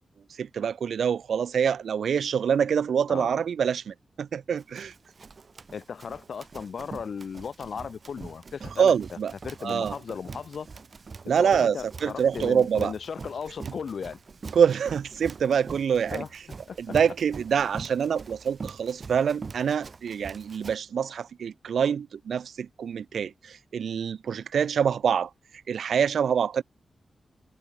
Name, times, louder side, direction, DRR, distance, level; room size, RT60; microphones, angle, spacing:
voice 1, 0.4-4.9 8.8-9.3 9.6-9.9 11.3-11.8 12.0-12.9 14.5-16.2 16.8-25.3 25.7-26.6, right 7 dB, 90° right, 0.7 m, -25 dB
Run, 4.6-20.8, right 4 dB, 40° right, 1.3 m, -43 dB
voice 2, 5.7-8.9 9.4-10.7 11.4-14.2 16.1-16.3 16.7-16.9, left 6 dB, 60° left, 0.8 m, -36 dB
wide cardioid pair, 175°, 0 cm